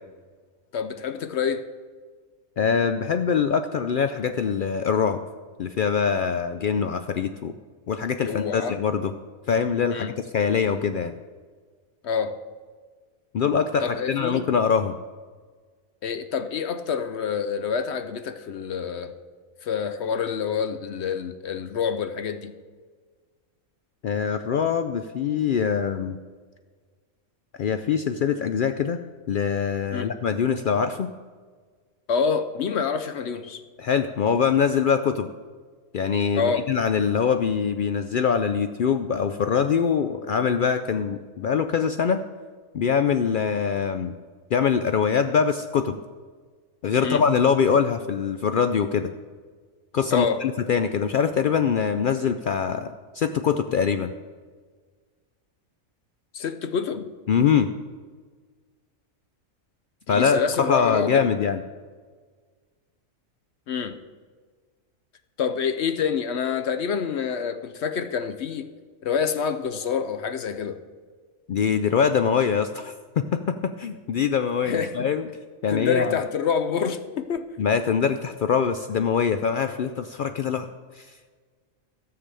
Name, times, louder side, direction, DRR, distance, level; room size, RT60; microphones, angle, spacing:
voice 1, 0.7-1.7 8.2-8.8 9.9-10.1 12.0-12.4 13.8-14.4 16.0-19.2 19.6-22.5 29.9-30.1 32.1-33.6 36.4-36.7 47.0-47.2 50.1-50.4 56.3-57.1 60.1-61.3 63.7-64.0 65.4-68.7 69.0-70.8 74.6-75.1 75.7-77.5, left 6 dB, 65° left, 11 dB, 0.8 m, -27 dB
voice 2, 2.6-5.2 5.6-7.5 7.9-9.1 9.5-11.1 13.3-15.0 24.0-26.2 27.6-29.0 29.3-31.1 33.8-35.3 35.9-42.2 42.7-44.1 44.5-46.0 46.8-49.1 49.9-54.1 57.3-57.7 60.1-61.6 71.5-75.3 75.6-76.2 77.6-80.7 80.9-81.1, left 6 dB, 85° left, 9 dB, 0.4 m, -23 dB
13.5 x 6.8 x 6.8 m, 1.5 s
omnidirectional pair, 1.4 m